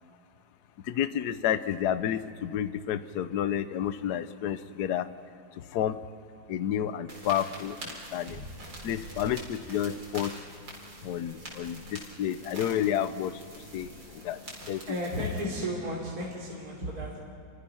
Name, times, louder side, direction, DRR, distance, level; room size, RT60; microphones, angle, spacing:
voice 1, 0.8-5.1 5.5-6.0 6.5-8.4 8.8-10.3 11.0-14.4 14.7-14.8, left 10 dB, 65° left, 12 dB, 1.3 m, -30 dB
sound 1, 7.1-15.4, right 1 dB, 80° right, 5.2 m, -44 dB
voice 2, 14.9-17.2, right 1 dB, 50° right, -3 dB, 3.6 m, -34 dB
29.5 x 24.0 x 5.8 m, 2.4 s
omnidirectional pair, 2.0 m